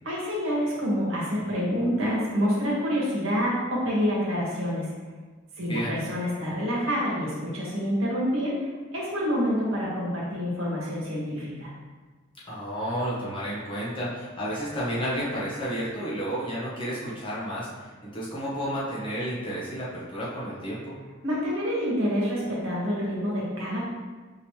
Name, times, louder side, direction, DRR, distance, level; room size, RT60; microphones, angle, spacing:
voice 1, 0.0-4.9 5.6-11.7 21.2-23.9, equal, 75° right, -5 dB, 1.3 m, -27 dB
voice 2, 5.6-6.0 12.5-20.9, equal, 25° left, -8 dB, 1.1 m, -31 dB
5.1 x 3.1 x 2.9 m, 1.3 s
head